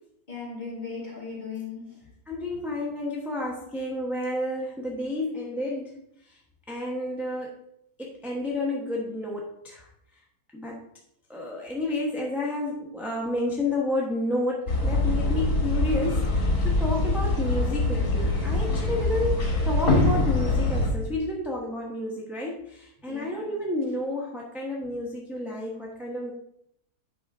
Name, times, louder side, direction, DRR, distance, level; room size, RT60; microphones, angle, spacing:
voice 1, 0.3-2.1 23.1-23.5, left 5 dB, 30° left, 2.2 m, -37 dB
voice 2, 2.3-6.0 6.7-7.5 8.0-9.8 10.5-10.8 11.3-26.3, left 1 dB, ahead, 1.0 m, -30 dB
sound 1, 14.7-20.9, left 2 dB, 65° left, 2.5 m, -24 dB
8.8 x 5.4 x 3.6 m
omnidirectional pair, 1.7 m